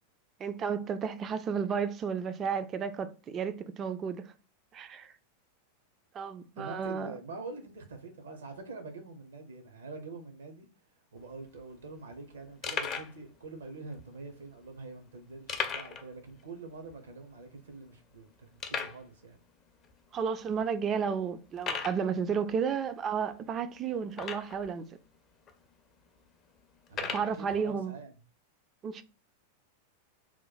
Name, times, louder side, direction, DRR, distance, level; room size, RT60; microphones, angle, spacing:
voice 1, 0.4-4.3 4.7-5.1 6.1-7.1 20.1-24.9 27.1-27.9 28.8-29.0, right 6 dB, 25° right, 0.4 m, -32 dB
voice 2, 6.6-10.7 11.1-19.4 26.9-28.1, right 3 dB, 65° right, 0.8 m, -45 dB
sound 1, 11.2-11.3 11.4-11.6 12.1-12.2 12.6-13.2 13.9-14.0 15.5-16.1 16.4-16.5 16.9-17.0 17.6-17.7 18.6-19.0 19.8-19.9 20.5-20.6 21.6-22.0 24.1-24.7 25.5-25.6 26.9-27.3, left 6 dB, 30° left, 0.5 m, -35 dB
3.0 x 2.2 x 4.0 m
figure-of-eight pair, 90°, 0 cm